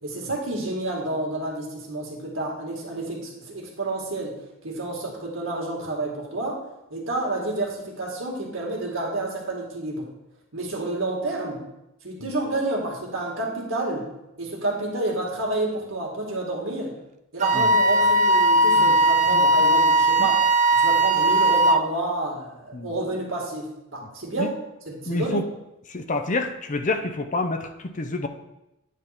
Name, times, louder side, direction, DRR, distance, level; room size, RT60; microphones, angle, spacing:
voice 1, 0.0-6.6 6.9-10.1 10.5-11.6 12.0-14.1 14.4-16.9 17.3-20.4 20.7-24.5 24.9-25.4, right 2 dB, 70° right, -1 dB, 2.1 m, -29 dB
Wind instrument woodwind instrument, 17.4-21.9, right 1 dB, 35° right, 0.3 m, -18 dB
voice 2, 25.1-25.4 25.9-28.3, left 2 dB, 40° left, 7 dB, 0.6 m, -28 dB
9.3 x 3.8 x 5.8 m, 0.88 s
head